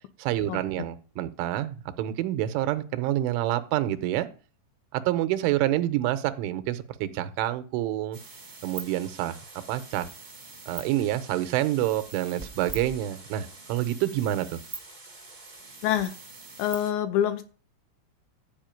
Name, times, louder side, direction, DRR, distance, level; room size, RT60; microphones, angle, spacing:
voice 1, 0.2-4.3 4.9-8.2 8.6-9.4 9.7-10.1 10.7-14.6, right 13 dB, 90° right, 11 dB, 3.3 m, -27 dB
sound 1, 8.1-16.9, right 4 dB, 40° right, 0.6 m, -44 dB
voice 2, 15.8-16.1 16.6-17.4, left 10 dB, 80° left, 9 dB, 2.9 m, -26 dB
13.0 x 5.1 x 9.1 m, 0.38 s
omnidirectional pair, 5.4 m